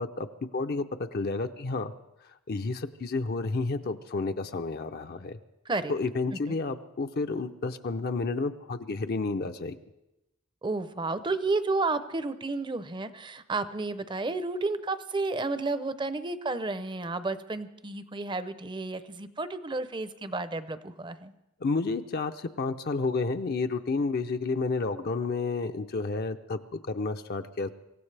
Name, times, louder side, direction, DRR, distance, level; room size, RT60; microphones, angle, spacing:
voice 1, 0.0-1.9 2.5-5.4 5.9-9.8 21.6-27.7, left 3 dB, 45° left, 7 dB, 0.5 m, -31 dB
voice 2, 10.6-21.3, right 3 dB, 20° right, 12 dB, 0.6 m, -31 dB
25.0 x 15.5 x 3.3 m, 0.93 s
head